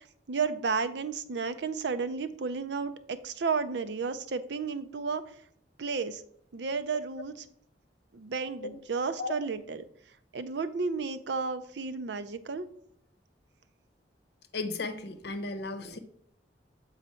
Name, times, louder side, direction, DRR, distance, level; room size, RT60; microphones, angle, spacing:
voice 1, 0.3-5.2 5.8-6.2 6.5-7.4 8.1-9.8 10.3-12.7, right 5 dB, 70° right, 11 dB, 0.5 m, -32 dB
voice 2, 14.5-16.0, left 3 dB, 65° left, 8 dB, 0.8 m, -35 dB
8.0 x 4.1 x 4.3 m, 0.63 s
head